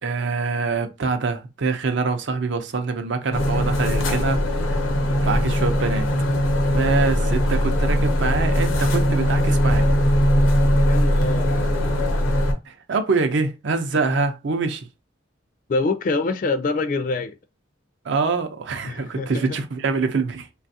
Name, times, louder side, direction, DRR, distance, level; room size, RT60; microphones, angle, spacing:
voice 1, 0.0-4.4 5.2-6.1 6.7-9.9 12.7-14.9 18.0-20.5, right 4 dB, 65° right, 0.5 m, -24 dB
sound 1, 3.3-12.5, equal, 80° left, 0.7 m, -20 dB
voice 2, 10.8-11.5 15.7-17.3 18.8-19.6, left 3 dB, 45° left, 0.3 m, -25 dB
3.2 x 2.3 x 2.6 m
head